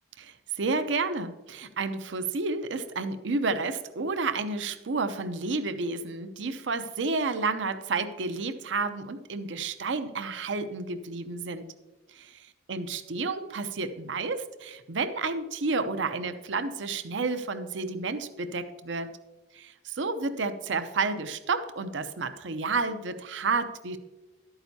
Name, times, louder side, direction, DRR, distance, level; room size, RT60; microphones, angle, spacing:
voice 1, 0.2-11.6 12.1-12.3 12.7-19.1 19.5-24.0, right 3 dB, 80° right, 10 dB, 0.6 m, -31 dB
11.5 x 8.8 x 2.7 m, 1.1 s
head